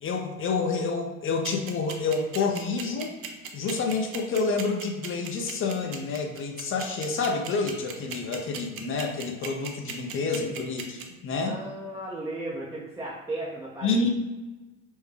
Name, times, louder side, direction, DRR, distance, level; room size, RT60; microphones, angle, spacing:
voice 1, 0.0-3.2 3.5-11.5 13.8-14.1, left 4 dB, 30° left, 3 dB, 0.7 m, -28 dB
sound 1, 1.4-11.0, right 8 dB, 80° right, 0.6 m, -36 dB
voice 2, 11.4-14.1, right 1 dB, 5° right, -6 dB, 0.6 m, -35 dB
4.4 x 2.2 x 3.3 m, 1.2 s
hypercardioid pair, 70°, 40 cm